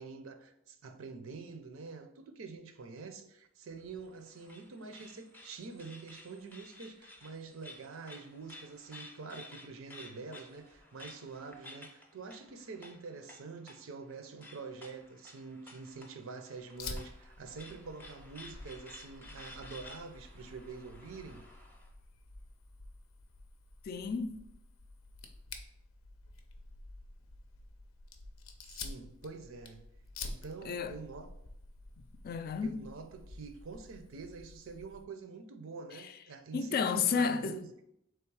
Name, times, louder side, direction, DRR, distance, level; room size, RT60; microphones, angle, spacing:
voice 1, 0.0-21.4 28.6-29.8 30.2-31.3 32.6-37.8, right 4 dB, 80° right, 0.5 m, -46 dB
sound 1, 3.7-21.9, left 2 dB, 10° left, 0.6 m, -54 dB
Fire, 16.8-35.0, left 3 dB, 90° left, 0.6 m, -49 dB
voice 2, 23.9-24.4 30.7-30.9 32.2-32.9 36.5-37.6, left 5 dB, 45° left, 0.3 m, -31 dB
3.5 x 3.2 x 4.6 m
head